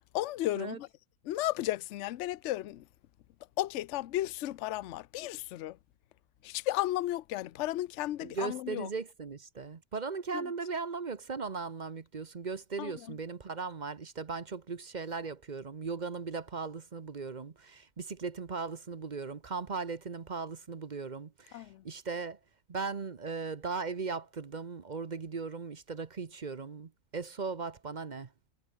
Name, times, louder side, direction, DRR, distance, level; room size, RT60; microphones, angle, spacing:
voice 1, 0.1-0.9 1.2-2.8 3.6-5.8 6.4-8.9 10.3-10.5 12.8-12.9 21.5-21.8, left 15 dB, 60° left, 0.8 m, -34 dB
voice 2, 8.2-22.4 22.7-28.3, right 4 dB, 35° right, 0.9 m, -38 dB
omnidirectional pair, 1.6 m